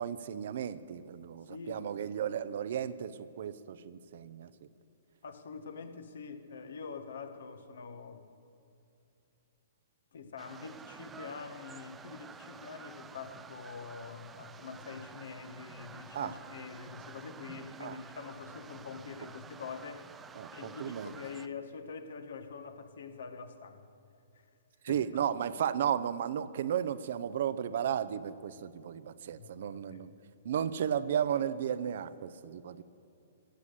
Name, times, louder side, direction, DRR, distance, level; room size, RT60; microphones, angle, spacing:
voice 1, 0.0-4.5 16.1-16.3 17.8-18.0 20.4-21.1 24.8-30.1 30.4-32.8, right 9 dB, 60° right, 15 dB, 0.7 m, -34 dB
voice 2, 1.5-1.9 5.2-8.3 10.1-20.1 20.5-23.9 24.3-24.4 24.9-25.2 29.4-30.0, left 5 dB, 70° left, 8 dB, 1.4 m, -45 dB
sound 1, 10.4-21.5, right 6 dB, 15° right, 0.5 m, -51 dB
16.0 x 8.4 x 8.2 m, 2.8 s
hypercardioid pair, 125°, 0 cm